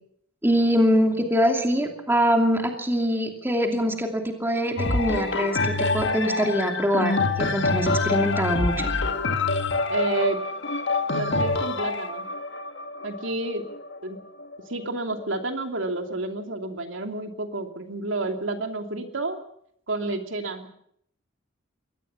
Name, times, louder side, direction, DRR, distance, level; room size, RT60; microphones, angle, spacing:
voice 1, 0.4-8.9, equal, 10° right, 3 dB, 2.7 m, -23 dB
sound 1, 4.8-14.6 15.2-15.3, left 3 dB, 65° left, 1.8 m, -26 dB
voice 2, 9.9-10.4 11.1-12.3 13.0-13.6 14.0-14.2 14.7-19.4 19.9-20.7, right 2 dB, 80° right, 5 dB, 2.9 m, -30 dB
22.5 x 18.5 x 7.2 m, 0.69 s
head